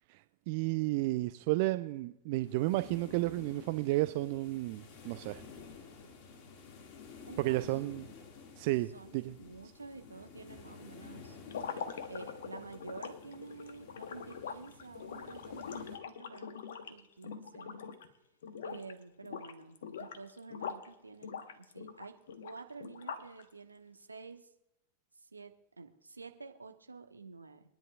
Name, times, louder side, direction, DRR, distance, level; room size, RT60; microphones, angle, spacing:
voice 1, 0.5-5.4 7.4-8.1 8.6-9.3, right 19 dB, 50° right, 12 dB, 0.4 m, -32 dB
sound 1, 2.4-16.0, left 5 dB, 40° left, 2.0 m, -52 dB
voice 2, 7.3-7.7 8.9-11.4 12.1-17.8 18.6-24.5 25.1-27.6, right 4 dB, 80° right, 6 dB, 1.2 m, -50 dB
sound 2, 11.4-18.1 18.4-18.9 19.2-20.9 21.2-23.4, left 7 dB, 60° left, 1.1 m, -43 dB
25.0 x 10.5 x 2.4 m, 0.84 s
figure-of-eight pair, 90°, 0 cm